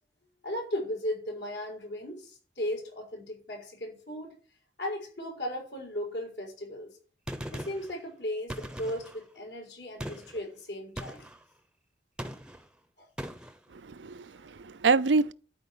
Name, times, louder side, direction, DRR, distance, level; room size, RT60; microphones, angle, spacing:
voice 1, 0.4-4.3 4.8-6.9 7.5-11.3 13.0-13.1, left 1 dB, 65° left, 6.2 m, -36 dB
Gunshot gunfire, 7.3-7.9 8.5-9.2 10.0-10.4 11.0-11.4 12.2-12.7 13.2-13.6, equal, 5° right, 0.9 m, -39 dB
voice 2, 13.7-15.3, right 4 dB, 85° right, 0.6 m, -26 dB
12.5 x 5.0 x 8.6 m
head